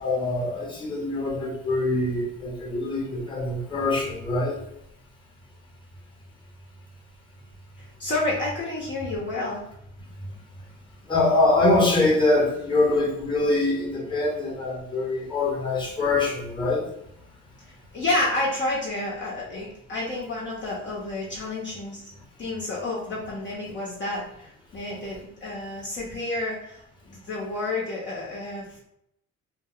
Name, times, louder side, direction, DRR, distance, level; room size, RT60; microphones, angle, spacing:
voice 1, 0.0-4.6 11.0-16.8, left 2 dB, 15° left, -2 dB, 1.0 m, -24 dB
voice 2, 7.8-9.6 17.6-22.1 22.4-28.8, left 2 dB, 40° left, -6 dB, 0.8 m, -30 dB
2.3 x 2.0 x 3.8 m, 0.77 s
cardioid pair, 90°, 30 cm